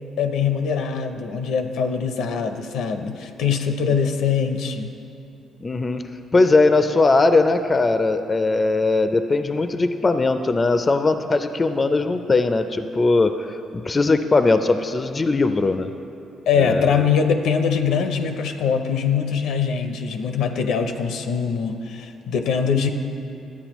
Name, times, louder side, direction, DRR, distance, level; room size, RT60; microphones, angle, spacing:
voice 1, 0.2-4.9 16.5-22.9, left 6 dB, 80° left, 6 dB, 0.5 m, -22 dB
voice 2, 5.6-6.0 6.3-15.9 16.6-17.0, left 3 dB, 30° left, 9 dB, 0.4 m, -19 dB
11.5 x 8.4 x 3.0 m, 2.7 s
cardioid pair, 90°, 0 cm